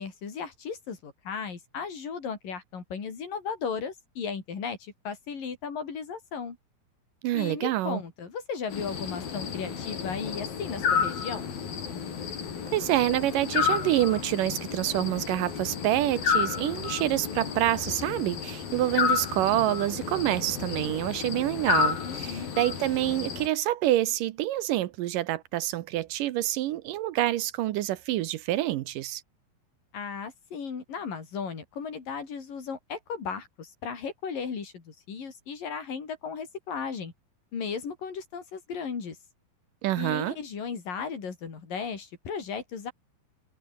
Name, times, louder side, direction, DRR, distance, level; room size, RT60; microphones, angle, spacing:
voice 1, 0.0-6.6 7.3-11.4 22.0-22.5 29.9-37.1 37.5-39.2 40.0-42.9, left 6 dB, 70° left, 5.9 m, -36 dB
voice 2, 7.2-8.0 12.7-29.2 39.8-40.4, right 14 dB, 75° right, 2.4 m, -27 dB
sound 1, 8.7-23.5, left 7 dB, 85° left, 5.6 m, -31 dB
omnidirectional pair, 4.1 m